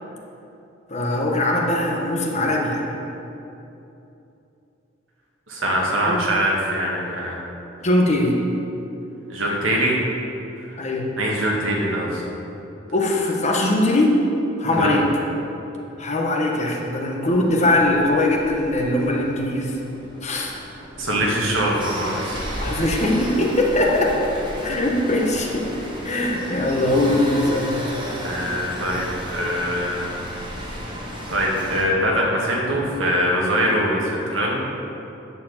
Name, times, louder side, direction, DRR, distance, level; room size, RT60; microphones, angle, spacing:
voice 1, 0.9-2.9 6.1-6.2 7.8-8.3 10.8-11.1 12.9-14.2 14.6-15.1 16.0-19.8 20.2-20.5 22.6-24.1 24.6-27.8, left 1 dB, 35° left, -1 dB, 1.2 m, -21 dB
voice 2, 5.5-7.4 9.3-10.0 10.6-10.8 11.2-12.2 14.7-14.9 21.0-22.4 28.2-30.2 31.3-34.6, equal, 85° right, -3 dB, 1.9 m, -23 dB
sound 1, 17.2-31.8, equal, 25° right, 1.6 m, -33 dB
10.5 x 4.7 x 7.3 m, 2.9 s
head